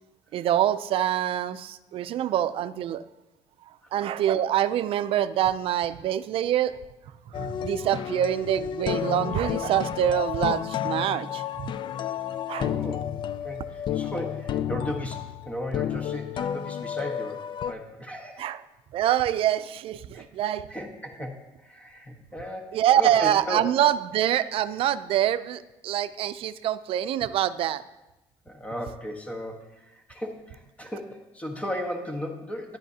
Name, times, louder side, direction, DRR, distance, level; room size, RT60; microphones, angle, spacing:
voice 1, 0.3-3.0 3.9-6.8 7.3-11.7 12.5-12.7 18.4-18.6 18.9-20.7 22.7-27.8, right 11 dB, 65° right, 14 dB, 0.5 m, -25 dB
sound 1, 7.3-17.7, left 10 dB, 50° left, 0.4 m, -31 dB
voice 2, 12.6-13.0 13.4-18.5 20.1-20.2 20.7-21.4 21.6-22.7 23.0-23.6 28.4-32.8, equal, 15° left, 2 dB, 1.3 m, -36 dB
12.5 x 10.5 x 2.8 m, 0.98 s
cardioid pair, 105°, 10 cm